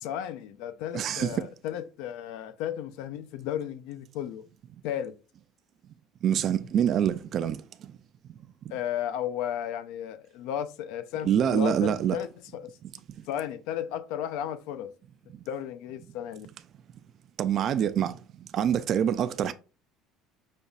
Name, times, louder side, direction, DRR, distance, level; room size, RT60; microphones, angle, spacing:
voice 1, 0.0-4.4 4.8-5.1 8.7-12.7 13.3-14.9 15.5-16.5, left 10 dB, 80° left, 0.5 m, -34 dB
voice 2, 0.9-1.4 6.2-7.6 11.2-12.2 17.4-18.1 18.5-19.5, right 9 dB, 45° right, 0.3 m, -25 dB
5.3 x 2.3 x 3.9 m
cardioid pair, 125°, 0 cm